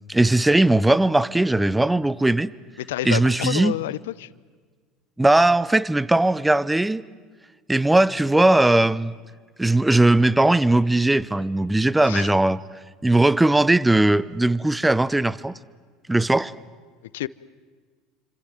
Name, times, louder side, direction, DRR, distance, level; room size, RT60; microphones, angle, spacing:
voice 1, 0.1-2.5 3.0-3.7 5.2-7.0 7.7-9.1 9.6-12.6 13.0-15.5 16.1-16.5, right 2 dB, 10° right, 19 dB, 0.9 m, -19 dB
voice 2, 2.8-4.3 12.0-12.3 17.1-17.3, left 15 dB, 75° left, 20 dB, 0.7 m, -29 dB
29.5 x 26.0 x 7.8 m, 1.5 s
hypercardioid pair, 70°, 0 cm